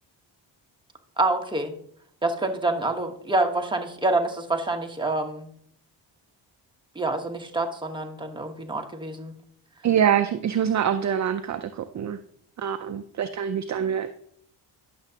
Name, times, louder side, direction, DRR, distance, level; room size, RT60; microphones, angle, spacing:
voice 1, 1.2-1.7 2.2-5.5 6.9-9.3, right 2 dB, 10° right, 3 dB, 1.2 m, -27 dB
voice 2, 9.8-12.2 12.6-14.1, right 9 dB, 40° right, 9 dB, 0.5 m, -25 dB
11.0 x 6.9 x 2.8 m, 0.66 s
cardioid pair, 80°, 45 cm